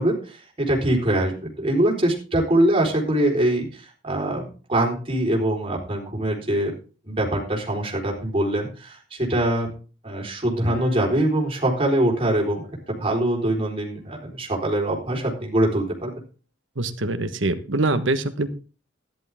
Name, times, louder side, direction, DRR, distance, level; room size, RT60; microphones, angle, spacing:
voice 1, 0.0-6.7 7.1-9.7 10.0-16.1, right 1 dB, 30° right, -1 dB, 4.2 m, -23 dB
sound 1, 10.7-14.4, left 4 dB, 50° left, 5.6 m, -45 dB
voice 2, 16.8-18.5, right 2 dB, 80° right, 10 dB, 1.3 m, -24 dB
13.5 x 11.5 x 3.6 m, 0.35 s
head